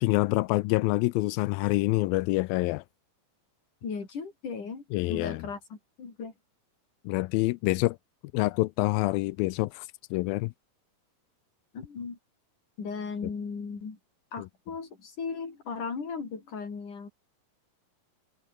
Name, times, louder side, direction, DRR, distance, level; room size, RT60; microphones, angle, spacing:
voice 1, 0.0-2.8 4.9-5.4 7.1-8.0 8.3-10.5, left 21 dB, 85° left, 2.4 m, -26 dB
voice 2, 3.8-6.3 11.7-12.2 12.8-14.0 14.3-17.1, left 5 dB, 60° left, 6.4 m, -37 dB
omnidirectional pair, 4.2 m